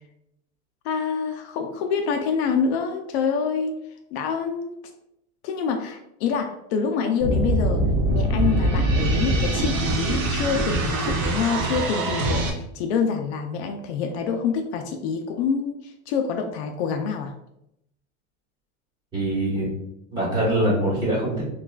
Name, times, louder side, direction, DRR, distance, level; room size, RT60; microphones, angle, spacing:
voice 1, 0.8-3.7 4.1-4.7 5.4-7.8 8.1-17.3, left 6 dB, 65° left, 5 dB, 0.5 m, -26 dB
sound 1, 7.2-12.5, right 1 dB, 30° right, 0.4 m, -23 dB
voice 2, 19.1-19.8 20.1-21.4, right 1 dB, 10° right, -7 dB, 1.2 m, -23 dB
5.7 x 2.3 x 2.3 m, 0.81 s
supercardioid pair, 180°, 36 cm